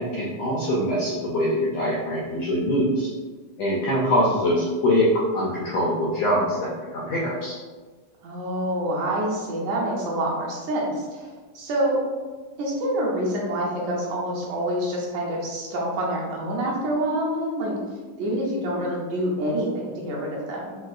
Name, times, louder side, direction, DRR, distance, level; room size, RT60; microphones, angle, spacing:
voice 1, 0.0-3.1 3.6-7.6, equal, 85° left, -5 dB, 1.5 m, -23 dB
voice 2, 8.2-11.2 11.6-12.0 12.6-17.8 18.2-20.8, right 1 dB, 75° right, -4 dB, 1.9 m, -26 dB
5.0 x 2.2 x 2.3 m, 1.4 s
omnidirectional pair, 3.5 m